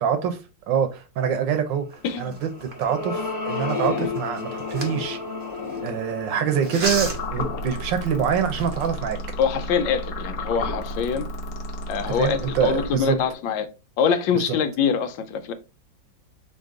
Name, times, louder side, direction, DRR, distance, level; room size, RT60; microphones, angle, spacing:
voice 1, 0.0-0.3 0.7-1.9 2.2-5.2 5.8-9.2 12.1-13.2 14.3-14.4, right 8 dB, 80° right, 1.5 m, -25 dB
sound 1, 1.9-5.9 6.6-7.4 8.0-8.1 8.4-9.0, right 3 dB, 50° right, 0.8 m, -34 dB
voice 2, 2.0-2.4 9.4-11.3 11.9-13.7 14.0-15.5, left 7 dB, 90° left, 1.4 m, -24 dB
sound 2, 2.2-8.7, left 4 dB, 25° left, 0.9 m, -32 dB
sound 3, 6.8-13.3, left 1 dB, 60° left, 1.0 m, -32 dB
4.0 x 2.9 x 3.7 m
omnidirectional pair, 2.0 m